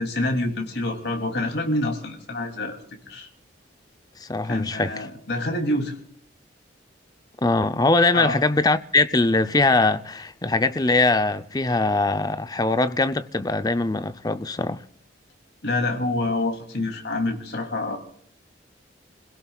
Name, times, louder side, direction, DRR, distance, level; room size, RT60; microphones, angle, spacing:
voice 1, 0.0-2.8 3.1-3.3 4.5-5.9 8.1-8.4 15.6-18.0, left 2 dB, 60° left, 3.0 m, -27 dB
voice 2, 4.2-5.1 7.4-14.8, left 3 dB, 20° left, 0.6 m, -22 dB
30.0 x 17.0 x 2.4 m
head